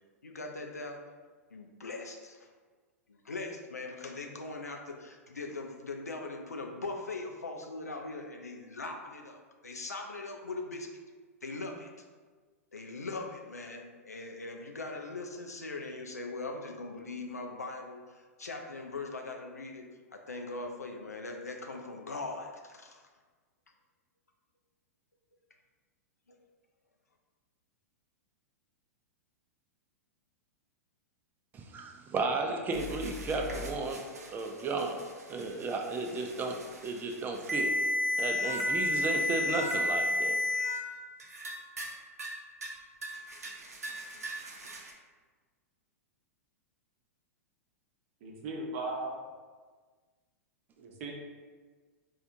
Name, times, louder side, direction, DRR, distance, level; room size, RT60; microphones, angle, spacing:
voice 1, 0.2-1.0 1.5-2.5 3.1-10.9 11.4-11.9 12.7-23.0, left 3 dB, 85° left, 3 dB, 0.4 m, -40 dB
voice 2, 31.5-37.7 38.2-40.4, right 3 dB, 20° right, 3 dB, 0.4 m, -34 dB
sound 1, 32.7-40.8 41.2-41.9 42.2-42.7 43.0-44.9, left 1 dB, 80° right, 0.5 m, -33 dB
voice 3, 48.2-49.1 50.8-51.1, right 2 dB, 50° right, 0 dB, 0.7 m, -37 dB
4.3 x 2.4 x 2.6 m, 1.4 s
figure-of-eight pair, 100°, 8 cm